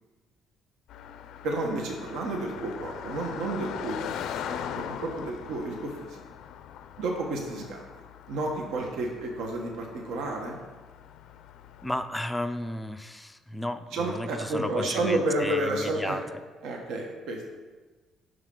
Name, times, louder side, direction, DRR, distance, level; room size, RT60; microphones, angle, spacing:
Car passing by, 0.9-12.1, left 9 dB, 65° left, 0.4 m, -41 dB
voice 1, 1.4-6.2 7.0-10.6 13.9-16.2 16.6-17.5, right 2 dB, 75° right, 1 dB, 1.2 m, -31 dB
voice 2, 11.8-16.2, left 1 dB, 5° left, 8 dB, 0.4 m, -34 dB
8.9 x 6.5 x 3.8 m, 1.3 s
cardioid pair, 155°, 0 cm